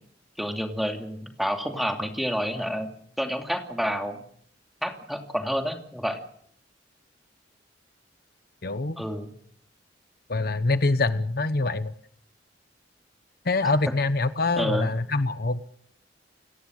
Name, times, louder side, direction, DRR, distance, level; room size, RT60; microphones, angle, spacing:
voice 1, 0.4-2.9 3.2-4.2 4.8-6.2 9.0-9.3 13.6-13.7 14.6-14.9, equal, ahead, 3 dB, 2.7 m, -29 dB
voice 2, 8.6-9.0 10.3-11.9 13.4-15.6, left 3 dB, 55° left, 12 dB, 1.0 m, -25 dB
30.0 x 18.0 x 6.4 m, 0.64 s
head